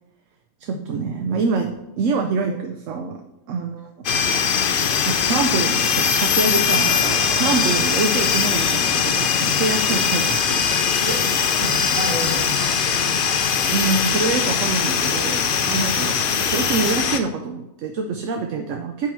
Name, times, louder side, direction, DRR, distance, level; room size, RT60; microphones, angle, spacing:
voice 1, 0.6-1.7 2.0-3.2 3.5-4.1 5.1-10.6 13.7-16.1 16.4-19.1, right 4 dB, 65° right, 4 dB, 0.9 m, -25 dB
sound 1, 4.0-17.2, left 6 dB, 60° left, 0.5 m, -21 dB
sound 2, 6.3-10.4, right 2 dB, 80° right, 2.4 m, -38 dB
voice 2, 11.0-12.9 15.7-16.0, right 2 dB, 50° right, -2 dB, 1.9 m, -31 dB
9.3 x 3.8 x 4.5 m, 0.91 s
omnidirectional pair, 1.5 m